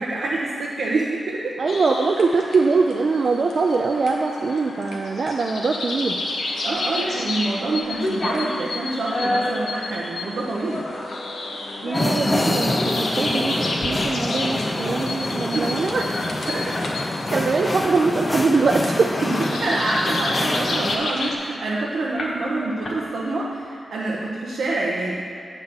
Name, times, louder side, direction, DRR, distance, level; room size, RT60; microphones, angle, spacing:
voice 1, 0.0-1.6 6.6-10.9 15.5-15.7 16.5-17.0 19.2-25.2, right 2 dB, 85° right, -4 dB, 0.8 m, -26 dB
voice 2, 1.6-6.2 11.8-16.0 17.3-19.2, right 4 dB, 50° right, 2 dB, 0.4 m, -22 dB
sound 1, 1.7-21.4, left 2 dB, 85° left, 1.0 m, -31 dB
sound 2, 6.7-7.3 7.6-11.2 11.7-12.6 13.1-13.2 13.6-13.9 14.2-14.3 14.6-16.9 17.2-17.4 17.8-18.3 18.7-18.8 19.0-20.2 20.5-21.7 22.2-22.6 22.8-23.5, left 1 dB, 40° left, 1.1 m, -31 dB
sound 3, 11.9-21.0, left 1 dB, 20° left, 0.5 m, -26 dB
8.2 x 4.0 x 7.0 m, 2.6 s
wide cardioid pair, 145°, 0 cm